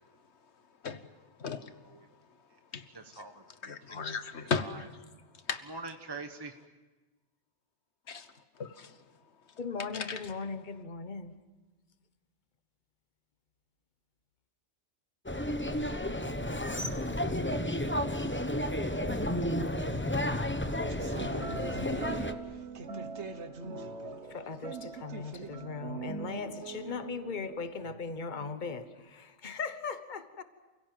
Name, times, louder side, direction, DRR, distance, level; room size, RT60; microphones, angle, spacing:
voice 1, 1.4-1.7 2.7-2.8 3.1-3.2 3.6-4.9 5.5-5.6 8.1-8.3 8.6-8.9 9.9-10.3, left 5 dB, 75° left, 1.5 m, -35 dB
voice 2, 2.9-4.1 4.6-4.8 5.7-6.5, right 3 dB, 20° right, 1.1 m, -44 dB
voice 3, 9.6-11.4 24.2-30.4, left 5 dB, 45° left, 1.3 m, -38 dB
sound 1, 15.3-22.3, left 1 dB, 10° left, 1.0 m, -32 dB
sound 2, 20.9-28.9, right 4 dB, 80° right, 1.6 m, -42 dB
29.0 x 16.5 x 9.2 m
omnidirectional pair, 1.2 m